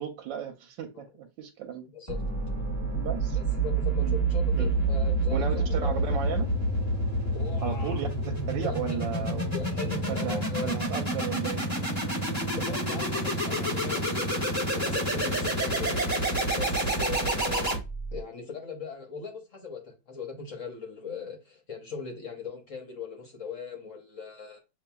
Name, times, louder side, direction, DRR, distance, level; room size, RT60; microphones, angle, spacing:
voice 1, 0.0-1.9 2.9-3.4 4.0-4.2 4.6-4.7 5.3-6.5 7.6-8.1 8.5-9.5 10.1-11.9 15.2-15.4, right 8 dB, 80° right, 1.3 m, -35 dB
sound 1, 2.1-18.2, right 2 dB, 25° left, 1.4 m, -28 dB
voice 2, 3.3-6.0 7.3-8.0 8.6-9.0 9.5-10.7 12.6-14.3 14.7-16.0 16.6-17.7 18.1-24.6, left 5 dB, 50° left, 1.1 m, -39 dB
6.9 x 2.8 x 2.2 m
omnidirectional pair, 2.0 m